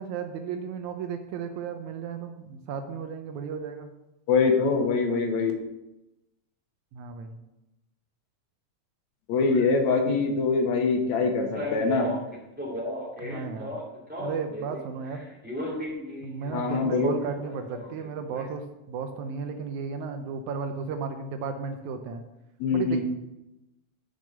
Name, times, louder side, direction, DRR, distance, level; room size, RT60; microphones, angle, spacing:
voice 1, 0.0-3.9 6.9-7.3 10.2-10.3 13.2-13.8 14.2-15.2 16.2-22.2 22.7-23.0, right 6 dB, 80° right, 6 dB, 2.1 m, -34 dB
voice 2, 4.3-5.5 9.3-12.1 16.5-17.2 22.6-23.0, left 4 dB, 70° left, 3 dB, 2.5 m, -24 dB
Male speech man speaking, 11.6-14.8 15.1-18.4, left 1 dB, 5° right, 2.0 m, -35 dB
6.8 x 6.8 x 6.6 m, 0.93 s
omnidirectional pair, 3.4 m